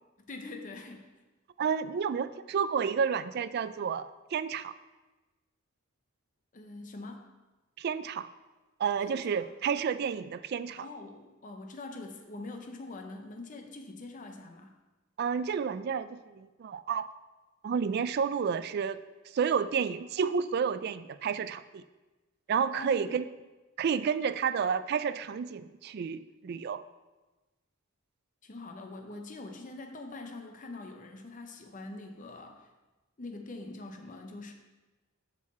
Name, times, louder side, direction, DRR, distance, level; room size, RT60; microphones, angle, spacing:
voice 1, 0.3-1.1 6.5-7.3 9.1-9.5 10.8-14.7 22.7-23.2 28.4-32.7 33.2-34.5, left 2 dB, 40° left, 4 dB, 0.7 m, -44 dB
voice 2, 1.6-4.7 7.8-8.3 8.8-10.9 15.2-17.1 17.6-19.0 19.3-21.8 22.5-23.2 23.8-26.8, right 6 dB, 50° right, 13 dB, 0.3 m, -30 dB
7.2 x 6.4 x 4.3 m, 1.1 s
head